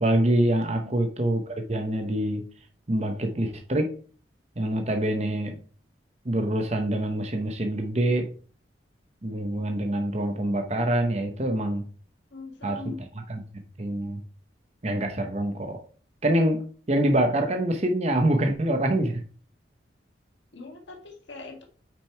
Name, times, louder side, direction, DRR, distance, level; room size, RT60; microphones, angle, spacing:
voice 1, 0.0-2.4 2.9-3.9 4.6-5.6 6.2-8.3 9.2-11.8 12.6-12.8 13.3-13.4 13.8-14.2 14.8-15.8 16.2-19.2, right 1 dB, 35° right, 5 dB, 0.9 m, -25 dB
voice 2, 0.7-1.2 12.3-13.1 20.5-21.6, left 3 dB, 75° left, 1 dB, 1.8 m, -42 dB
6.1 x 5.2 x 4.5 m, 0.41 s
head